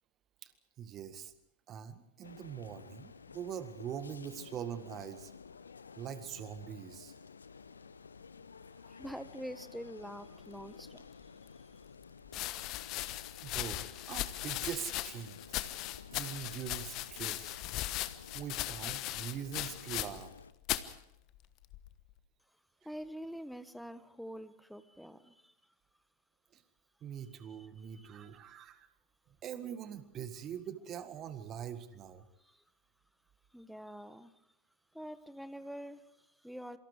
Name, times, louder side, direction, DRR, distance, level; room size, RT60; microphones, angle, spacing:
voice 1, 0.8-1.3 1.7-5.3 6.0-7.1 13.4-15.5 16.1-17.6 18.3-20.3 26.5-26.6 27.0-28.9 29.4-32.2, right 9 dB, 30° right, 11 dB, 1.8 m, -43 dB
sound 1, 2.2-20.5, left 5 dB, 75° left, 1.0 m, -53 dB
voice 2, 8.8-11.8 22.8-25.7 27.3-28.3 32.4-32.6 33.5-34.4 34.9-36.8, equal, ahead, 13 dB, 1.3 m, -47 dB
sound 2, 11.2-11.3 12.2-20.4 20.6-20.9 21.7-22.1, left 16 dB, 40° left, 1.2 m, -38 dB
27.5 x 24.5 x 4.9 m, 0.80 s
figure-of-eight pair, 90°, 0 cm